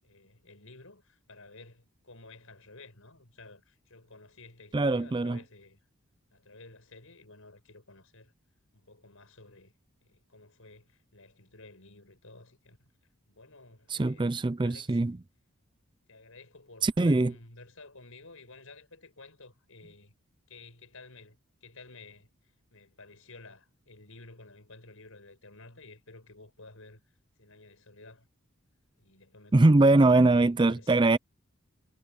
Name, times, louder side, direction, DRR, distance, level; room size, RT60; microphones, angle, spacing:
voice 1, 0.0-5.8 6.3-8.3 8.7-9.7 10.0-12.9 13.3-14.3 14.6-15.0 16.1-20.1 20.5-27.0 27.4-28.3 29.0-30.2 30.6-31.0, left 3 dB, 70° left, 6.0 m, -53 dB
voice 2, 4.7-5.4 13.9-15.2 16.8-17.3 29.5-31.2, right 2 dB, 20° right, 0.4 m, -22 dB
head